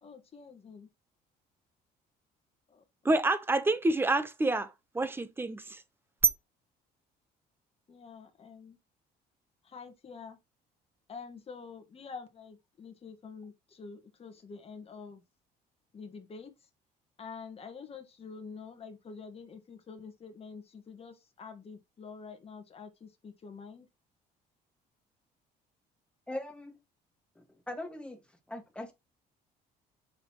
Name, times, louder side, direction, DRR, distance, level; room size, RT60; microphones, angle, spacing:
voice 1, 0.0-0.9 2.7-2.8 7.9-8.8 9.6-10.4 11.1-15.2 15.9-16.5 17.2-23.9, left 5 dB, 35° left, 1.5 m, -47 dB
voice 2, 3.0-5.8 6.2-6.3, right 2 dB, 15° right, 0.8 m, -27 dB
voice 3, 26.3-26.8 27.3-28.2 28.5-28.9, left 1 dB, 5° left, 1.7 m, -40 dB
6.6 x 5.8 x 3.0 m
cardioid pair, 110°, 17 cm